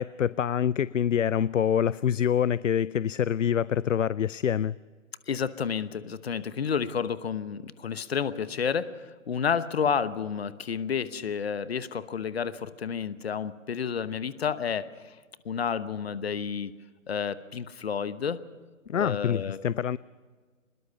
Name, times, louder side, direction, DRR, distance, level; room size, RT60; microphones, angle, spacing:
voice 1, 0.0-4.8 18.9-20.0, left 9 dB, 65° left, 21 dB, 0.5 m, -26 dB
voice 2, 5.3-15.2 15.4-16.7 17.1-18.4 18.9-19.6, left 7 dB, 50° left, 15 dB, 1.0 m, -30 dB
23.5 x 21.0 x 5.8 m, 1.4 s
figure-of-eight pair, 130°, 40 cm